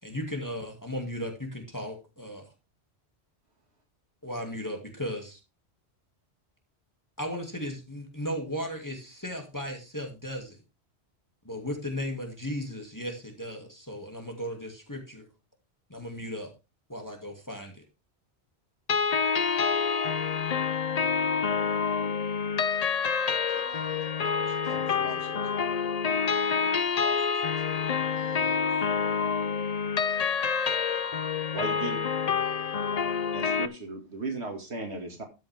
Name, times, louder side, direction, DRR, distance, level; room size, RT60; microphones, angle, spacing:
voice 1, 0.0-2.5 4.2-5.4 7.2-10.6 11.4-15.3 15.9-16.5 16.9-17.8, equal, 15° left, 2 dB, 2.3 m, -36 dB
sound 1, 18.9-33.7, left 6 dB, 45° left, 0.6 m, -27 dB
voice 2, 23.5-25.3 26.6-26.7 27.2-28.7, equal, 40° right, 1 dB, 4.8 m, -51 dB
voice 3, 24.2-25.4 31.5-32.1 33.3-35.2, right 2 dB, 70° right, 4 dB, 2.3 m, -37 dB
13.5 x 7.7 x 3.5 m, 0.27 s
omnidirectional pair, 1.2 m